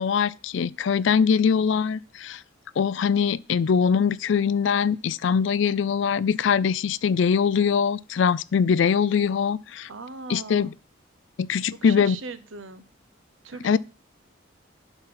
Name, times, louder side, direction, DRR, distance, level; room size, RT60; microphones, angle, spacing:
voice 1, 0.0-2.4 2.8-9.9 10.3-10.7 11.4-12.2 13.6-13.8, left 6 dB, 65° left, 0.4 m, -22 dB
voice 2, 9.9-10.7 11.7-12.8 13.4-13.8, right 4 dB, 75° right, 0.8 m, -39 dB
11.5 x 4.0 x 5.7 m
head